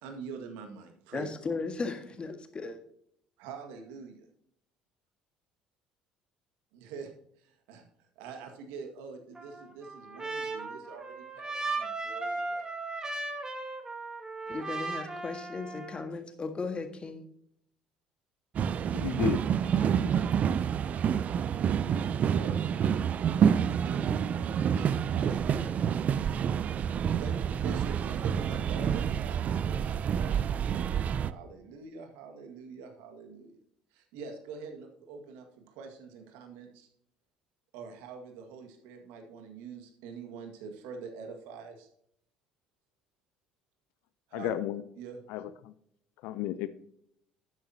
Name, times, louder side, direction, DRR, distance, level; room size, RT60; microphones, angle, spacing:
voice 1, 0.0-1.3 3.4-4.3 6.7-7.1 7.4-7.9 8.2-12.8 22.2-22.6 23.2-25.8 27.2-33.6 33.9-36.9 37.7-41.9 44.3-44.5 45.0-45.2, right 5 dB, 70° right, 1.9 m, -45 dB
voice 2, 1.1-2.8 14.5-17.3, left 4 dB, 30° left, 1.8 m, -36 dB
Trumpet, 9.3-16.1, right 3 dB, 20° right, 2.2 m, -37 dB
sound 1, 18.5-31.3, right 8 dB, 45° right, 0.5 m, -28 dB
voice 3, 18.9-19.4 19.8-20.2 44.3-44.8 45.3-45.7 46.2-46.7, left 11 dB, 70° left, 0.6 m, -33 dB
12.0 x 8.8 x 2.9 m
hypercardioid pair, 60°, 3 cm